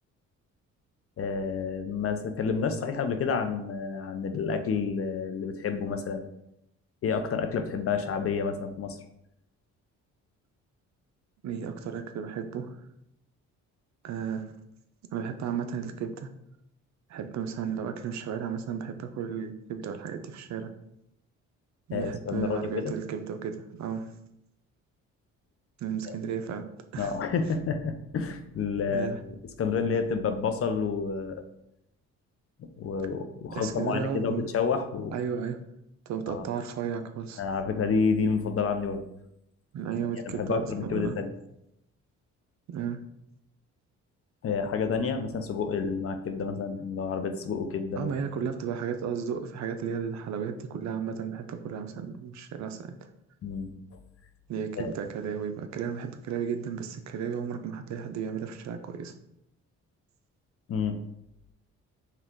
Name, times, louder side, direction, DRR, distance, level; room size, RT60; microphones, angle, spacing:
voice 1, 1.2-6.3 7.0-9.0 21.9-22.9 26.1-26.2 27.0-31.4 32.8-35.1 36.3-36.4 37.4-39.0 40.3-41.3 44.4-48.1 53.4-53.7 54.8-54.9 60.7-61.0, left 5 dB, 50° left, 8 dB, 0.6 m, -29 dB
voice 2, 11.4-12.7 14.0-14.5 15.1-16.3 17.1-20.7 21.9-24.1 25.8-26.7 26.9-27.1 28.8-29.2 33.5-34.5 35.1-35.6 36.1-37.4 39.7-41.1 42.7-43.0 48.0-52.9 54.5-59.1, right 7 dB, 65° right, 8 dB, 0.6 m, -34 dB
5.6 x 2.4 x 3.6 m, 0.80 s
cardioid pair, 90°, 30 cm